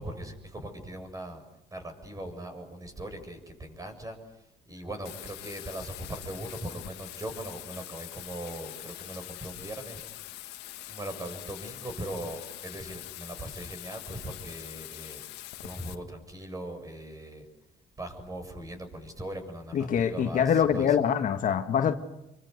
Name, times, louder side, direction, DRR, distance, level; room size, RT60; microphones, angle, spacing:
voice 1, 0.0-1.4 1.7-10.0 10.3-10.5 10.9-15.3 15.6-17.5 18.0-21.0, right 1 dB, 20° right, 7.3 m, -40 dB
Bathtub (filling or washing), 5.0-15.9, left 15 dB, 85° left, 1.8 m, -44 dB
voice 2, 19.7-21.9, left 8 dB, 55° left, 1.8 m, -24 dB
28.0 x 24.0 x 8.2 m
cardioid pair, 110°, 17 cm